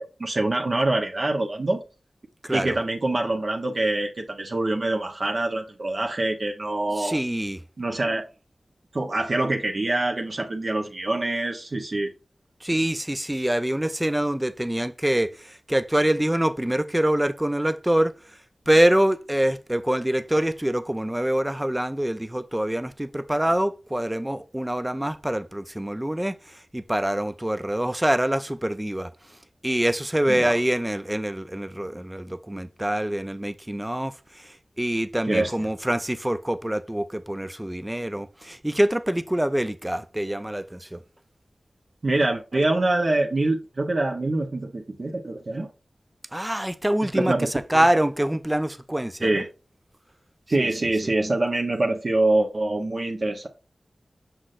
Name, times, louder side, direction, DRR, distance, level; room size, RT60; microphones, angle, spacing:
voice 1, 0.0-1.8 2.5-7.2 7.8-8.2 8.9-12.1 30.3-30.5 35.3-35.7 42.0-45.7 47.1-47.5 49.2-49.5 50.5-53.5, right 2 dB, 50° right, 0.8 m, -25 dB
voice 2, 2.4-2.8 7.0-7.6 12.6-18.1 18.7-29.1 29.6-41.0 46.3-49.4 50.6-50.7, right 1 dB, 10° right, 0.4 m, -25 dB
6.4 x 5.9 x 2.5 m
wide cardioid pair, 95°, 0 cm